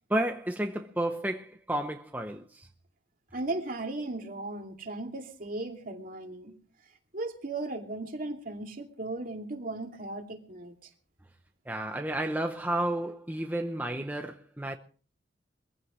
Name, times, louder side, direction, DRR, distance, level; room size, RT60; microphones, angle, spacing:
voice 1, 0.1-2.7 11.7-14.8, right 1 dB, 10° right, 0.7 m, -31 dB
voice 2, 3.3-6.5 7.1-10.9, right 2 dB, 50° right, 2.5 m, -36 dB
22.5 x 15.5 x 3.2 m
head